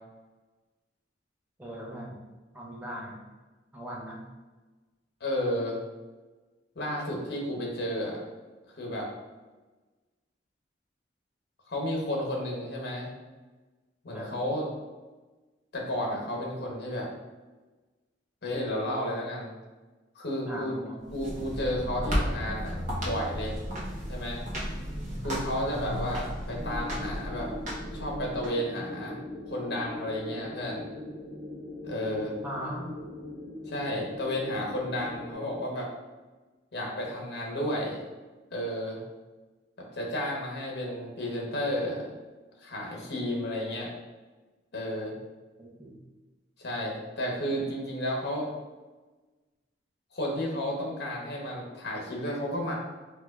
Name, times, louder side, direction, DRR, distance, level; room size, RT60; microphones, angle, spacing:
voice 1, 1.6-2.2 2.5-3.2 3.7-4.2 14.1-14.4 20.5-21.0 32.4-32.9 45.6-46.0, equal, 10° right, -3 dB, 0.6 m, -39 dB
voice 2, 5.2-5.8 6.7-8.2 8.7-9.1 11.7-13.1 14.0-14.6 15.7-17.1 18.4-19.5 20.1-20.7 21.1-22.8 23.0-23.5 24.1-24.4 25.2-27.5 27.9-29.2 29.5-30.8 31.8-32.4 33.7-35.9 36.7-38.0 38.5-39.0 39.9-42.1 42.6-43.9 44.7-45.1 46.6-48.5 50.1-52.7, left 1 dB, 60° left, -1 dB, 0.9 m, -32 dB
sound 1, 21.0-28.5, equal, 45° right, 0.8 m, -34 dB
sound 2, 26.5-35.3, left 1 dB, 70° right, 1.4 m, -41 dB
4.7 x 2.3 x 2.3 m, 1.2 s
head